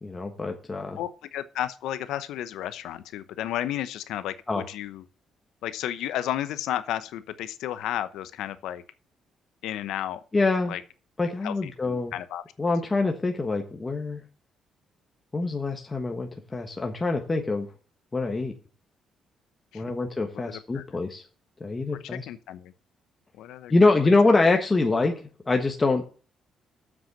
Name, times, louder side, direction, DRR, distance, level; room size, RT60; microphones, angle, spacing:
voice 1, 0.0-1.0 4.5-4.6 10.3-10.8 11.2-12.1 12.6-14.2 15.3-17.7 18.1-18.5 19.7-21.2 21.6-22.2 23.7-25.1 25.5-26.0, left 3 dB, 25° left, 1.3 m, -24 dB
voice 2, 1.0-5.0 5.6-8.8 9.6-10.2 10.7-10.8 11.4-12.4 19.7-19.8 20.3-20.8 22.1-22.7 23.3-23.9, left 12 dB, 85° left, 0.8 m, -33 dB
7.7 x 6.2 x 6.7 m
cardioid pair, 90°, 0 cm